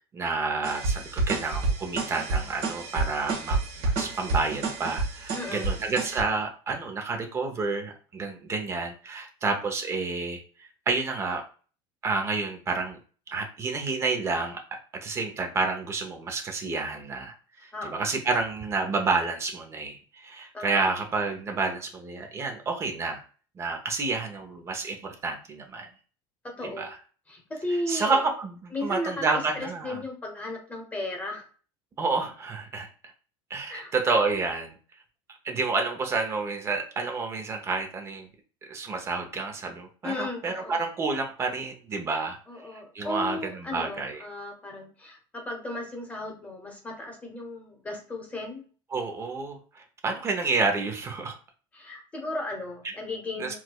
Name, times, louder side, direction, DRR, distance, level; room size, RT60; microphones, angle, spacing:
voice 1, 0.1-10.4 10.9-11.5 12.0-13.0 13.3-17.3 17.6-23.2 23.6-25.9 26.6-27.0 27.9-30.0 32.0-32.9 33.5-34.7 35.4-38.3 38.7-42.4 42.7-44.2 48.9-51.4 53.4-53.5, right 4 dB, 25° right, 4 dB, 0.7 m, -29 dB
sound 1, 0.6-6.2, right 3 dB, 60° right, 1.3 m, -29 dB
voice 2, 5.3-5.7 17.7-18.0 20.5-21.0 26.4-26.9 27.3-28.2 28.7-31.4 33.7-33.9 40.0-40.8 42.1-48.7 51.7-53.5, left 2 dB, 15° left, 1 dB, 0.9 m, -35 dB
4.5 x 2.2 x 2.3 m, 0.38 s
cardioid pair, 145°, 11 cm